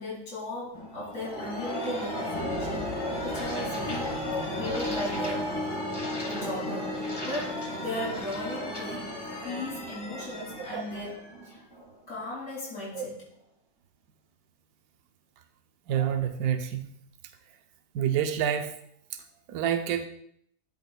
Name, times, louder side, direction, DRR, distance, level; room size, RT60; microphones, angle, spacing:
voice 1, 0.0-5.5 6.3-9.1 9.4-11.6 12.1-13.2, left 1 dB, 80° left, -5 dB, 3.0 m, -37 dB
sound 1, 0.7-12.2, left 1 dB, 20° left, 1.1 m, -34 dB
voice 2, 15.9-16.8 17.9-18.7 19.5-20.1, right 9 dB, 85° right, 6 dB, 1.1 m, -27 dB
13.0 x 6.6 x 2.3 m, 0.69 s
omnidirectional pair, 1.6 m